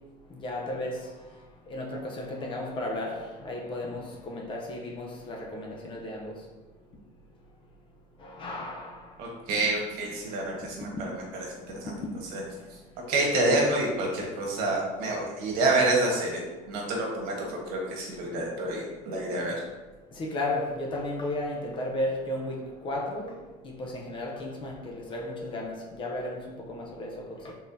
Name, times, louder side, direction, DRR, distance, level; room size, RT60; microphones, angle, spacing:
voice 1, 0.4-1.0 1.7-6.3 8.2-9.0 20.1-23.4 23.6-27.5, left 1 dB, 35° left, 0.6 m, -34 dB
voice 2, 9.2-11.2 11.5-11.9 12.3-12.4 12.7-12.8 13.1-16.4 16.7-19.6, right 2 dB, 80° right, 1.2 m, -28 dB
4.3 x 3.7 x 2.6 m
cardioid pair, 155°, 15 cm